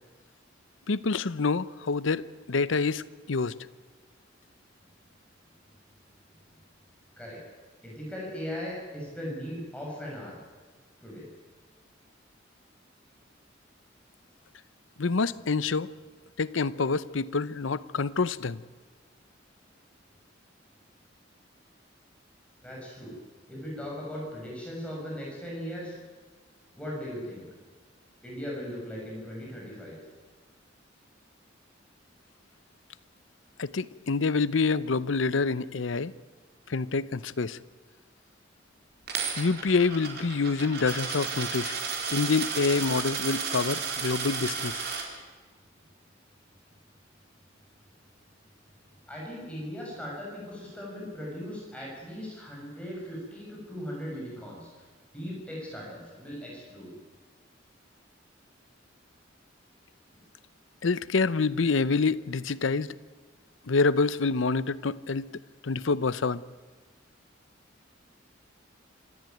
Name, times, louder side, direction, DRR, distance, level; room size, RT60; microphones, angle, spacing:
voice 1, 0.9-3.0 3.3-3.5 15.0-15.9 16.4-18.6 33.6-36.1 36.7-37.6 39.4-41.8 42.1-44.8 60.8-62.9 63.7-65.3 65.6-66.4, left 4 dB, 85° left, 17 dB, 0.7 m, -27 dB
voice 2, 7.8-10.4 11.0-11.3 22.6-23.1 23.5-25.9 26.7-27.5 28.2-30.0 49.1-54.7 55.1-56.9, equal, 5° left, -4 dB, 6.5 m, -38 dB
Coin (dropping), 39.1-45.0, right 5 dB, 60° right, 4.3 m, -33 dB
26.5 x 13.5 x 9.2 m, 1.4 s
head